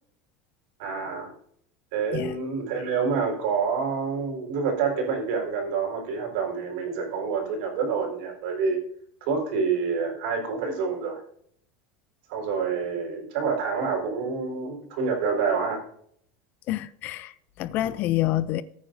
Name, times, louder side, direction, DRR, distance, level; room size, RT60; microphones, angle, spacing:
voice 1, 0.8-1.3 1.9-8.8 9.2-11.2 12.3-15.8, right 5 dB, 65° right, 4.2 m, -27 dB
voice 2, 16.7-18.6, left 14 dB, 35° left, 0.4 m, -27 dB
19.5 x 9.2 x 2.6 m
supercardioid pair, 180°, 6 cm